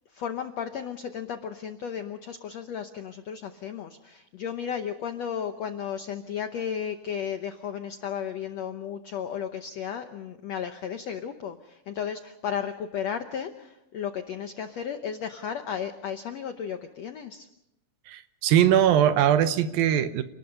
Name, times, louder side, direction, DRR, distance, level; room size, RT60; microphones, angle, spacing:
voice 1, 0.1-17.5, left 8 dB, 80° left, 7 dB, 1.5 m, -34 dB
voice 2, 18.1-20.2, right 10 dB, 75° right, 11 dB, 2.6 m, -21 dB
29.0 x 19.5 x 5.4 m, 0.88 s
omnidirectional pair, 4.3 m